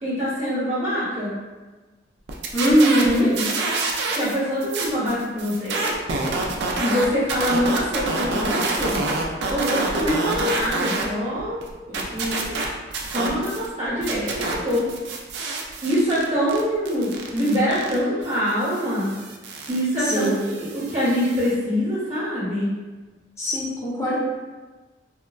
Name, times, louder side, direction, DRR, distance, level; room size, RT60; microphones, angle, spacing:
voice 1, 0.0-1.3 3.0-3.5 4.1-5.9 6.8-9.0 9.5-11.6 11.9-12.5 13.1-14.9 15.8-19.1 19.7-20.3 20.6-22.7, equal, 35° right, -9 dB, 0.9 m, -24 dB
sound 1, 2.3-4.4 4.6-11.1 11.4-13.7 14.0-21.5, right 3 dB, 60° right, 0.4 m, -27 dB
voice 2, 2.5-3.3 20.0-20.4 23.4-24.2, equal, 15° left, -7 dB, 0.6 m, -20 dB
3.5 x 2.1 x 2.3 m, 1.2 s
head